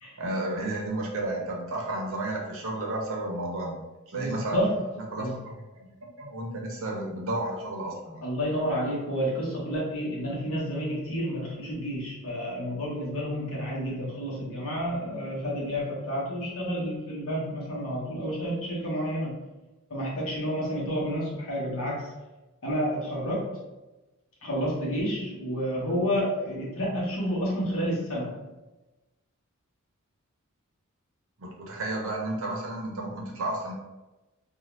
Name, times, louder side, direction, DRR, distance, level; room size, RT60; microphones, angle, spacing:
voice 1, 0.2-3.8 4.1-4.6 5.1-8.2 31.4-33.7, right 2 dB, 65° right, -1 dB, 0.7 m, -32 dB
voice 2, 4.1-4.8 5.2-5.4 8.2-19.4 19.9-22.2 22.6-23.7 24.4-28.4, equal, 65° left, -5 dB, 1.0 m, -30 dB
2.7 x 2.3 x 3.1 m, 1.1 s
head